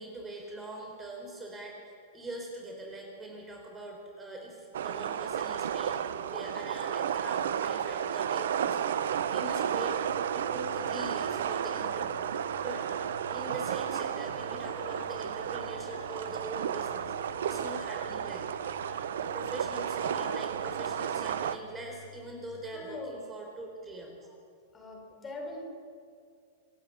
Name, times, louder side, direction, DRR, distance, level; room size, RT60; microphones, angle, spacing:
voice 1, 0.0-1.8 2.1-10.0 10.3-12.2 12.6-12.8 13.3-18.6 19.2-24.2, right 2 dB, 20° right, 0 dB, 4.4 m, -42 dB
sound 1, 4.7-21.6, right 8 dB, 70° right, 0.9 m, -33 dB
sound 2, 10.0-23.0, left 8 dB, 55° left, 1.7 m, -53 dB
voice 2, 22.7-23.2 24.7-25.6, left 2 dB, 20° left, 1 dB, 6.1 m, -41 dB
26.5 x 10.5 x 9.4 m, 2.3 s
hypercardioid pair, 105°, 0 cm